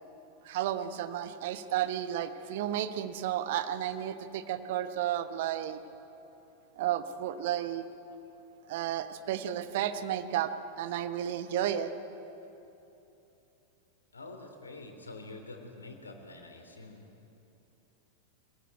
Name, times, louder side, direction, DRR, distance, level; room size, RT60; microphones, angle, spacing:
voice 1, 0.4-5.8 6.8-7.9 8.7-11.9, right 11 dB, 50° right, 11 dB, 1.1 m, -32 dB
voice 2, 14.1-17.1, left 2 dB, 75° left, 5 dB, 2.8 m, -46 dB
23.5 x 15.5 x 9.1 m, 2.9 s
figure-of-eight pair, 90°, 0 cm